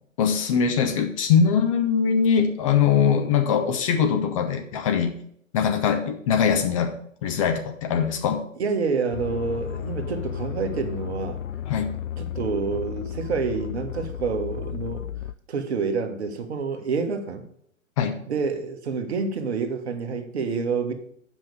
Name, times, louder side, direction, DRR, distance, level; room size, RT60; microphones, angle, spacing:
voice 1, 0.2-5.1 5.5-6.9 7.2-8.4 11.7-11.9 18.0-18.2, left 7 dB, 25° left, 5 dB, 0.7 m, -22 dB
voice 2, 8.6-11.4 12.2-15.0 15.5-17.4 18.3-20.9, right 5 dB, 55° right, 7 dB, 1.3 m, -28 dB
sound 1, 9.1-15.3, left 9 dB, 75° left, 0.6 m, -33 dB
7.6 x 5.5 x 6.6 m, 0.68 s
figure-of-eight pair, 120°, 40 cm